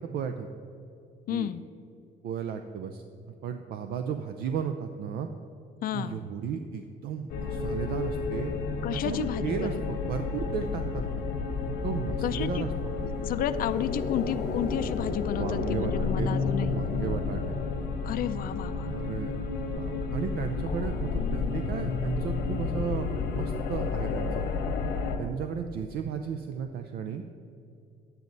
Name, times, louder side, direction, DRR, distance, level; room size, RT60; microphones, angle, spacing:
voice 1, 0.1-0.5 1.3-1.5 2.2-5.3 5.9-8.5 8.9-11.2 11.7-13.0 15.4-16.4 16.7-17.5 18.8-19.4 19.7-24.4 25.2-27.2, right 7 dB, 70° right, 7 dB, 0.6 m, -34 dB
voice 2, 1.3-1.6 5.8-6.2 8.8-9.8 12.2-12.7 13.0-16.8 18.0-18.9, left 10 dB, 60° left, 12 dB, 0.5 m, -32 dB
sound 1, 7.3-25.2, left 4 dB, 85° left, 1.2 m, -31 dB
10.5 x 9.1 x 4.0 m, 2.7 s
cardioid pair, 110°, 17 cm